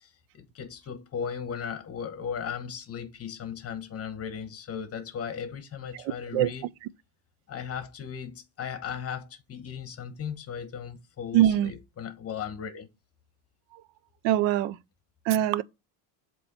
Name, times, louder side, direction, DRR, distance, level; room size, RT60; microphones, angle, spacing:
voice 1, 0.0-6.7 7.5-12.9, left 7 dB, 30° left, 1.0 m, -37 dB
voice 2, 11.3-11.7 13.7-13.8 14.2-14.8 15.3-15.6, right 12 dB, 70° right, 0.6 m, -22 dB
7.7 x 3.1 x 4.3 m
cardioid pair, 130°, 47 cm